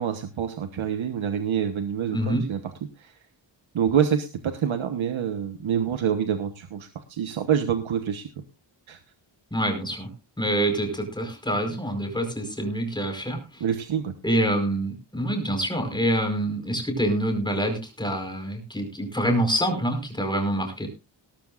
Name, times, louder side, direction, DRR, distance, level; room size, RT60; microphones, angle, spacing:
voice 1, 0.0-2.6 3.0-3.1 3.7-8.4 8.9-9.0 13.6-14.1, right 8 dB, 85° right, 8 dB, 1.3 m, -26 dB
voice 2, 2.1-2.5 9.5-10.1 10.4-13.6 14.2-20.9, right 1 dB, 10° left, 4 dB, 4.8 m, -26 dB
18.5 x 13.0 x 2.5 m, 0.28 s
wide cardioid pair, 155°, 46 cm